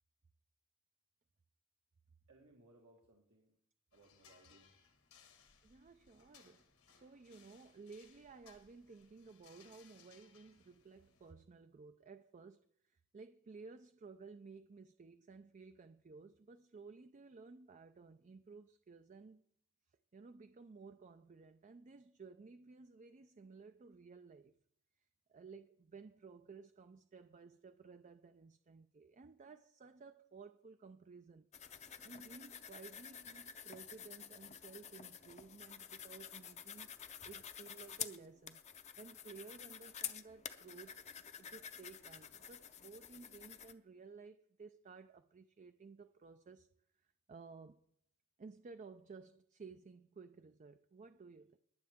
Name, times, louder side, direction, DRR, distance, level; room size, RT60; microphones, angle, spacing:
voice 1, 2.3-3.6 3.9-4.7, right 1 dB, 80° right, 1.7 m, -65 dB
sound 1, 3.9-11.3, left 7 dB, 80° left, 1.7 m, -66 dB
voice 2, 5.6-19.4 20.1-24.5 25.3-31.5 31.8-36.9 37.2-46.7 47.3-47.8 48.4-51.6, right 4 dB, 35° right, 0.4 m, -56 dB
sound 2, 31.5-43.7, left 8 dB, 30° left, 0.6 m, -50 dB
21.5 x 7.6 x 3.6 m
head